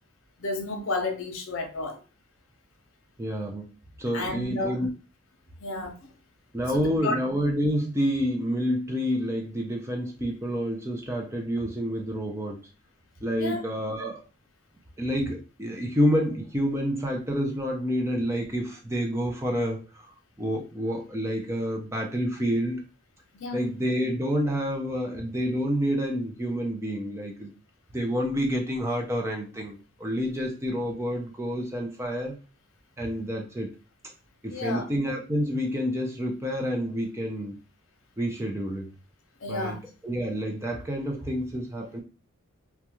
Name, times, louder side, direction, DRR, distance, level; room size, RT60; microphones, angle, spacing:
voice 1, 0.4-2.0 4.1-4.8 5.6-5.9 6.7-7.2 13.4-13.6 23.3-23.6 34.5-34.9 39.4-39.8, left 2 dB, 60° left, 0.6 m, -31 dB
voice 2, 3.2-3.7 4.0-4.9 6.5-12.6 13.2-14.2 15.0-20.1 20.4-22.8 23.5-27.5 27.9-32.3 33.0-33.7 34.4-37.6 38.2-38.9 39.5-42.0, equal, 10° right, 0.4 m, -28 dB
2.3 x 2.2 x 2.9 m
head